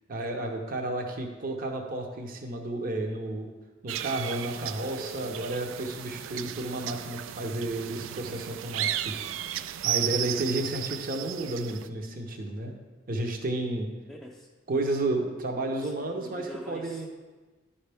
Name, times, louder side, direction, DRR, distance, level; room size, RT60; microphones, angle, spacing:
voice 1, 0.1-3.5 3.8-9.3 9.8-12.7 13.1-13.9 14.7-17.1, right 2 dB, 45° right, 3 dB, 0.8 m, -32 dB
sound 1, 3.9-11.9, right 12 dB, 80° right, 0.3 m, -34 dB
voice 2, 14.1-14.5 15.8-15.9 16.2-17.1, left 1 dB, ahead, -2 dB, 0.5 m, -45 dB
10.5 x 5.6 x 3.4 m, 1.3 s
head